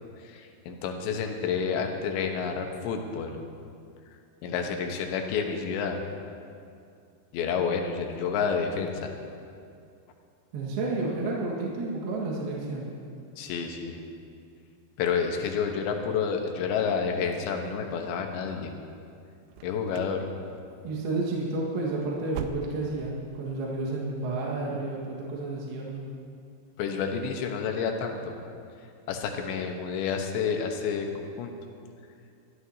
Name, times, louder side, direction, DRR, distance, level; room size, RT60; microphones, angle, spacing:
voice 1, 0.2-3.4 4.4-6.0 7.3-9.1 13.4-14.0 15.0-18.7 19.6-20.3 26.8-28.3 29.1-31.5, left 6 dB, 75° left, 3 dB, 3.0 m, -29 dB
voice 2, 10.5-12.9 20.8-26.0, right 2 dB, 60° right, -4 dB, 3.1 m, -31 dB
sound 1, 19.5-20.2 20.5-20.9 21.2-21.4 21.8-23.1 23.4-23.5 24.0-24.1, right 8 dB, 85° right, 2.9 m, -41 dB
22.5 x 13.5 x 2.8 m, 2.4 s
omnidirectional pair, 5.6 m